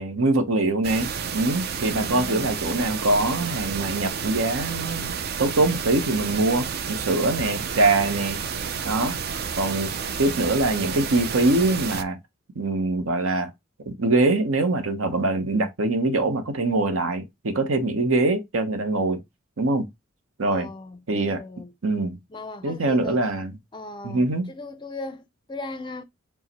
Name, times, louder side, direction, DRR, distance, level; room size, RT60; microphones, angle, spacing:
voice 1, 0.0-8.4 8.8-9.2 9.6-9.9 10.2-12.2 12.5-13.5 13.9-19.2 19.6-19.9 20.4-20.7 21.1-21.4 21.8-22.2 22.6-23.5 24.0-24.5, right 2 dB, 75° right, 0.9 m, -23 dB
sound 1, 0.8-12.0, right 6 dB, 50° right, 0.4 m, -31 dB
voice 2, 1.8-2.5 20.4-21.7 22.3-23.3 23.7-26.0, left 2 dB, 20° left, 0.4 m, -38 dB
4.7 x 2.1 x 4.1 m
head